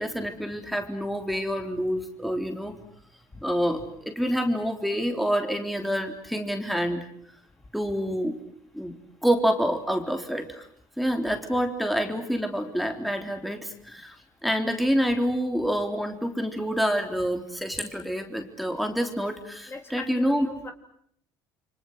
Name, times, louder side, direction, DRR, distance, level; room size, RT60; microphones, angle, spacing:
voice 1, 0.0-2.8 3.4-7.1 7.7-8.4 8.7-8.9 9.2-10.6 11.0-14.2 14.4-20.5, equal, ahead, 4 dB, 3.6 m, -27 dB
voice 2, 19.7-20.7, left 3 dB, 25° left, 6 dB, 3.6 m, -39 dB
29.0 x 25.0 x 8.0 m, 0.67 s
supercardioid pair, 95°, 10 cm